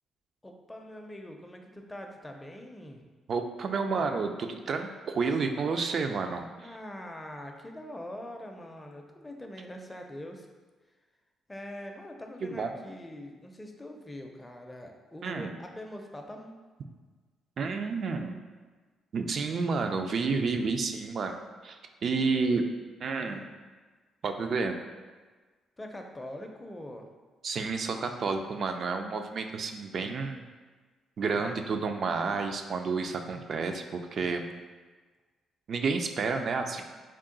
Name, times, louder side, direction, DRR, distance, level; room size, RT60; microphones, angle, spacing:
voice 1, 0.4-3.0 6.6-10.5 11.5-16.6 22.1-22.7 23.1-23.5 25.8-27.1 31.3-31.9, left 1 dB, 15° left, 3 dB, 0.4 m, -43 dB
voice 2, 3.3-6.5 12.4-12.7 15.2-15.5 17.6-18.4 19.1-21.4 21.6-21.8 22.0-22.7 23.0-23.4 24.2-24.8 27.4-30.4 31.2-34.5 35.7-36.8, right 4 dB, 55° right, 5 dB, 0.3 m, -30 dB
3.6 x 2.3 x 3.8 m, 1.4 s
cardioid pair, 90°, 0 cm